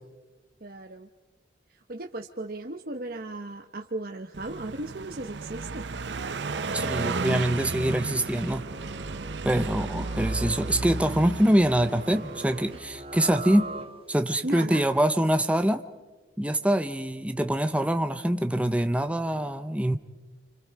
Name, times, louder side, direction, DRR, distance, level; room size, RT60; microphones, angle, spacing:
voice 1, 0.6-1.1 1.7-5.9 14.4-14.9, right 2 dB, 55° right, 3 dB, 1.0 m, -36 dB
Car passing by, 4.3-12.8, right 3 dB, 80° right, 0.7 m, -34 dB
sound 1, 6.1-14.3, right 2 dB, 30° right, 1.4 m, -41 dB
voice 2, 6.7-8.7 9.4-13.7 14.1-15.8 16.4-20.0, right 1 dB, 5° right, 9 dB, 0.7 m, -24 dB
29.5 x 26.5 x 4.7 m, 1.3 s
head